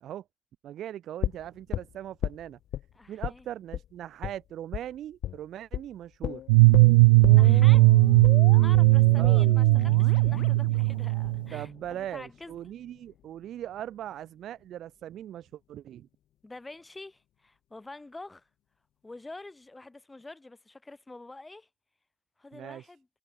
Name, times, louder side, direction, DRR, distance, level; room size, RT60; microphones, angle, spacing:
voice 1, 0.6-2.6 3.1-6.4 9.2-9.5 11.5-16.1 22.5-22.9, right 11 dB, 45° right, 1.2 m, -40 dB
sound 1, 1.2-2.8 3.2-3.4 3.7-3.9 4.2-4.4 4.7-4.9 5.2-5.4 5.7-5.9 6.2-12.2 12.5-12.6, left 12 dB, 45° left, 0.5 m, -35 dB
voice 2, 2.9-3.5 7.3-7.9 8.5-12.5 16.4-18.5 19.0-21.7 22.4-23.1, left 2 dB, 10° left, 5.1 m, -47 dB
sound 2, 6.5-11.6, right 25 dB, 80° right, 0.4 m, -18 dB
supercardioid pair, 120°, 0 cm